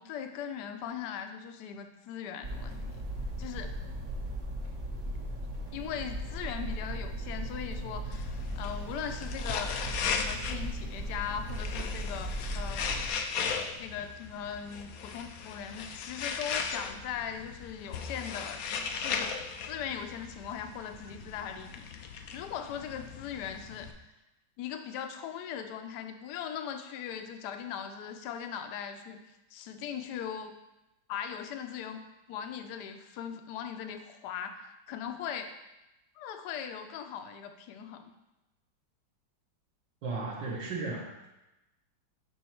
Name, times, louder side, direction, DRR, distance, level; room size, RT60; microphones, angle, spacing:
voice 1, 0.0-2.9 3.4-3.7 5.1-5.2 5.7-13.3 13.8-19.3 19.7-21.9 22.3-23.9 24.6-29.2 29.5-30.5 31.1-35.5 36.2-38.1, left 8 dB, 70° left, 7 dB, 1.1 m, -39 dB
sound 1, 2.4-13.1, right 1 dB, 50° right, 1.6 m, -37 dB
sound 2, 8.1-23.9, left 6 dB, 85° left, 0.7 m, -38 dB
voice 2, 40.0-41.3, right 3 dB, 65° right, -3 dB, 1.6 m, -35 dB
6.2 x 5.4 x 4.4 m, 0.97 s
omnidirectional pair, 2.2 m